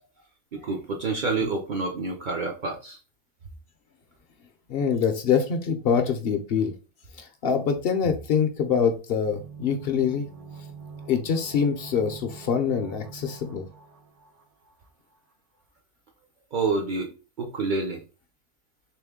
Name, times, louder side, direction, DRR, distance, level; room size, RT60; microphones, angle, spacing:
voice 1, 0.5-3.0 16.5-17.1 17.4-18.0, right 3 dB, 60° right, 1 dB, 0.5 m, -28 dB
voice 2, 4.7-6.7 7.2-10.3 11.1-13.7, left 6 dB, 65° left, 7 dB, 0.6 m, -25 dB
sound 1, 9.2-14.9 15.1-15.2, right 5 dB, 80° right, 1.1 m, -44 dB
3.3 x 3.0 x 3.5 m, 0.33 s
omnidirectional pair, 1.5 m